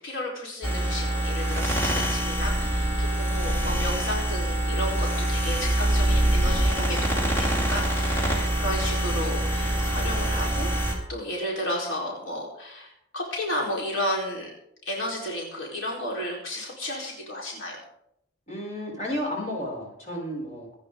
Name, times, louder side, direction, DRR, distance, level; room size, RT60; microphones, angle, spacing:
voice 1, 0.0-10.7 11.1-14.5 14.8-17.8, left 1 dB, 85° left, -2 dB, 4.4 m, -33 dB
sound 1, 0.6-10.9, right 1 dB, 15° left, 4.2 m, -25 dB
voice 2, 18.5-20.7, equal, 40° left, -2 dB, 6.6 m, -32 dB
26.0 x 9.9 x 3.9 m, 0.75 s
head